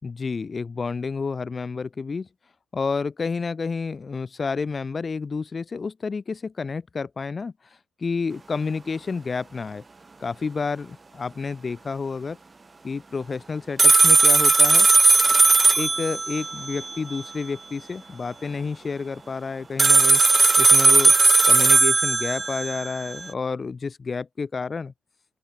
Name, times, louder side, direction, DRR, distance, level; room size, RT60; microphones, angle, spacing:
voice 1, 0.0-2.3 2.7-7.5 8.0-9.8 10.2-12.4 12.8-14.9 15.8-20.2 20.6-21.1 21.5-24.9, left 4 dB, 35° left, 6.2 m, -30 dB
sound 1, 13.8-17.2 19.8-23.2, right 3 dB, 25° right, 0.7 m, -17 dB
open air
cardioid pair, 90°, 0 cm